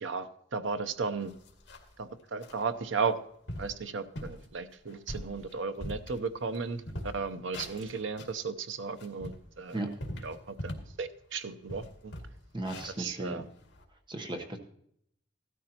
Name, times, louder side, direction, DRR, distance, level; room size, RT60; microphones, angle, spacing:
voice 1, 0.0-1.3 2.0-3.2 3.6-6.9 7.1-9.8 10.2-10.6 11.0-12.1 13.0-13.5, right 5 dB, 85° right, 11 dB, 0.7 m, -35 dB
sound 1, 0.7-0.8 1.2-2.0 2.4-2.6 3.1-3.2 3.5-3.8 4.1-4.4 4.9-6.6 6.8-8.4 8.8-11.0 11.3-11.4 11.7-13.8, left 1 dB, 65° left, 2.1 m, -42 dB
voice 2, 12.5-13.5 14.1-14.6, right 1 dB, 25° right, 4 dB, 1.0 m, -36 dB
16.0 x 13.0 x 2.9 m, 0.69 s
head